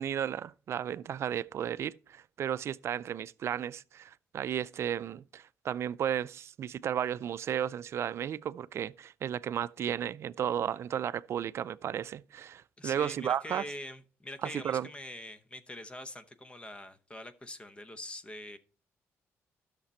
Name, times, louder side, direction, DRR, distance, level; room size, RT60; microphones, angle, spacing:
voice 1, 0.0-13.7 14.4-14.9, right 9 dB, 60° right, 0.4 m, -34 dB
voice 2, 12.8-18.6, left 1 dB, 20° left, 0.8 m, -44 dB
11.5 x 6.7 x 4.3 m
cardioid pair, 110°, 5 cm